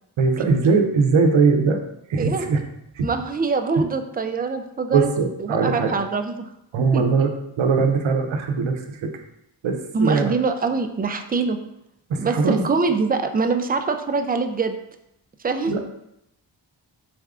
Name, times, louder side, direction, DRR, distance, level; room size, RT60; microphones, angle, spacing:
voice 1, 0.2-1.8 2.1-2.6 2.9-3.1 4.9-5.9 6.7-7.3 7.6-9.1 9.6-10.3 12.1-12.6 15.7-15.8, right 4 dB, 80° right, 4 dB, 0.6 m, -20 dB
voice 2, 2.2-2.5 3.0-5.1 5.4-6.5 6.9-7.0 9.9-11.6 12.2-14.8 15.4-15.7, right 4 dB, 20° right, 7 dB, 0.3 m, -24 dB
4.2 x 3.5 x 2.4 m, 0.81 s
cardioid pair, 55°, 47 cm